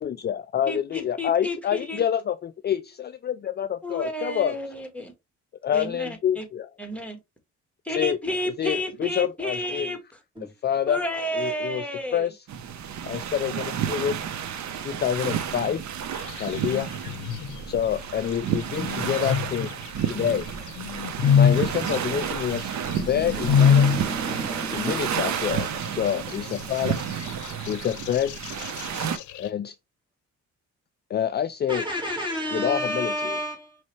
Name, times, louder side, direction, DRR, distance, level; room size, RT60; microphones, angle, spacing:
voice 1, 0.0-4.6 5.6-6.7 7.9-8.2 8.4-9.9 10.4-11.0 11.3-11.9 12.1-12.3 13.1-14.2 14.8-15.9 16.4-16.9 17.7-19.7 20.1-20.5 21.3-23.9 24.7-27.0 27.7-28.4 29.4-29.8 31.1-31.9 32.5-33.4, left 9 dB, 35° left, 0.4 m, -27 dB
voice 2, 0.7-2.0 3.8-5.1 5.7-6.5 6.8-7.2 7.8-10.0 10.9-12.3, equal, 5° left, 1.7 m, -31 dB
sound 1, 12.5-29.2, right 8 dB, 65° right, 0.9 m, -31 dB
sound 2, 16.1-17.6 18.6-20.3 20.7-24.1 24.4-24.5 25.1-29.5, left 7 dB, 75° left, 0.6 m, -25 dB
voice 3, 21.2-21.6 22.7-25.0 27.2-27.3 31.7-33.8, right 1 dB, 15° right, 2.7 m, -31 dB
5.4 x 3.1 x 3.1 m
cardioid pair, 90°, 30 cm